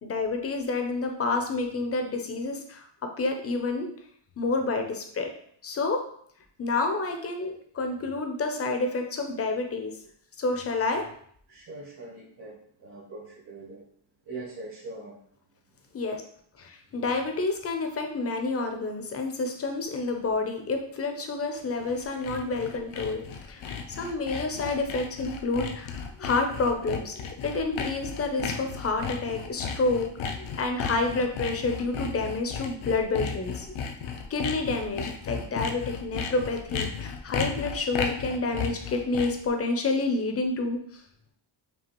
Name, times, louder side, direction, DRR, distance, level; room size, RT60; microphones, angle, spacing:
voice 1, 0.0-2.9 3.2-3.9 4.4-5.3 5.6-6.0 6.6-9.9 10.4-11.1 15.9-16.2 16.6-23.2 23.5-30.1 30.6-33.7 34.3-41.0, left 3 dB, 30° left, 4 dB, 0.5 m, -29 dB
voice 2, 11.5-12.5 12.8-13.8 14.3-15.1, right 3 dB, 60° right, -4 dB, 1.1 m, -41 dB
Sawing, 21.7-39.5, left 6 dB, 85° left, 0.6 m, -34 dB
5.3 x 2.4 x 2.9 m, 0.63 s
wide cardioid pair, 145°, 47 cm